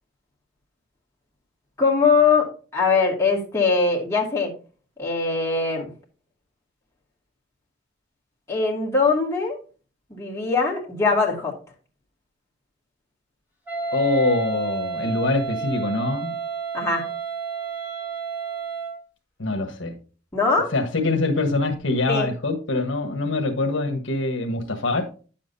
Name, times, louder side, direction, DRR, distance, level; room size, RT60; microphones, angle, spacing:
voice 1, 1.8-4.5 5.0-5.9 8.5-9.6 10.1-11.5 16.7-17.1 20.3-20.7 22.1-22.3, left 4 dB, 15° left, -3 dB, 2.3 m, -21 dB
Wind instrument woodwind instrument, 13.7-19.0, right 5 dB, 10° right, 2.0 m, -30 dB
voice 2, 13.9-16.4 19.4-20.0 20.7-25.1, left 2 dB, 65° left, 3 dB, 1.3 m, -24 dB
10.0 x 7.3 x 2.7 m, 0.36 s
head